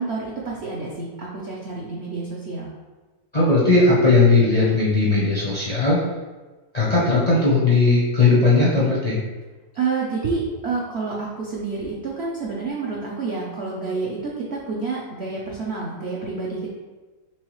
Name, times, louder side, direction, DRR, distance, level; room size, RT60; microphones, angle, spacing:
voice 1, 0.0-2.7 9.7-16.7, right 4 dB, 70° right, -4 dB, 0.6 m, -28 dB
voice 2, 3.3-6.0 6.7-9.2, left 3 dB, 45° left, -6 dB, 0.5 m, -17 dB
4.6 x 3.6 x 3.1 m, 1.2 s
omnidirectional pair, 2.0 m